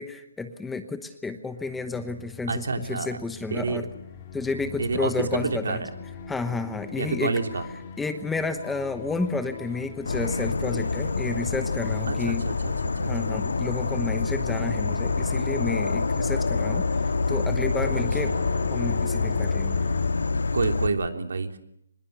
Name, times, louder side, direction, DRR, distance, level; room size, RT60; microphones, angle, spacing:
voice 1, 0.0-3.8 4.3-5.8 6.3-7.3 8.0-12.4 13.1-16.9 17.3-18.4 18.7-19.8, left 3 dB, 5° left, 9 dB, 1.1 m, -31 dB
sound 1, 1.5-20.1, left 8 dB, 30° left, 2.9 m, -41 dB
sound 2, 1.9-20.7, right 4 dB, 20° right, 7.6 m, -50 dB
voice 2, 2.5-3.2 3.5-3.9 4.8-5.9 7.0-7.6 12.1-13.1 17.9-18.5 20.5-21.6, right 4 dB, 70° right, 6 dB, 3.3 m, -29 dB
Insect / Frog, 10.1-20.9, left 3 dB, 85° left, 1.9 m, -26 dB
25.0 x 21.0 x 8.2 m, 0.74 s
hypercardioid pair, 165°, 0 cm